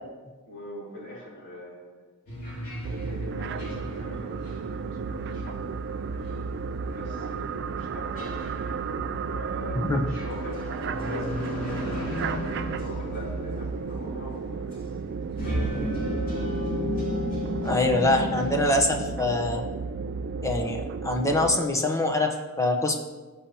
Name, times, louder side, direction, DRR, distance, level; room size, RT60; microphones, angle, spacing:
voice 1, 0.4-2.0 2.9-6.2 7.0-8.5 8.8-14.8 15.1-15.9, equal, 55° left, -5 dB, 3.7 m, -42 dB
sound 1, 2.3-18.6, left 1 dB, 40° left, 2.7 m, -35 dB
sound 2, 2.8-21.6, right 5 dB, 50° right, 0.4 m, -33 dB
voice 2, 17.6-19.6 20.4-23.0, left 2 dB, 15° left, 2 dB, 0.9 m, -24 dB
17.5 x 7.1 x 2.9 m, 1.3 s
head